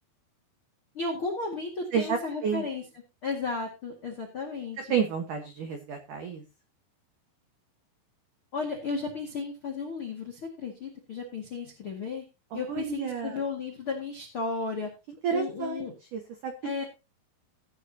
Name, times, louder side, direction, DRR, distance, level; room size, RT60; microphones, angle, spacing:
voice 1, 0.9-2.8 3.2-4.8 8.5-12.2 12.5-14.9 15.3-15.9 16.6-16.8, left 4 dB, 60° left, 2 dB, 1.4 m, -34 dB
voice 2, 1.9-2.7 4.8-6.4 12.5-13.4 15.2-16.5, right 7 dB, 85° right, 5 dB, 1.8 m, -31 dB
16.5 x 9.7 x 2.8 m, 0.28 s
omnidirectional pair, 5.9 m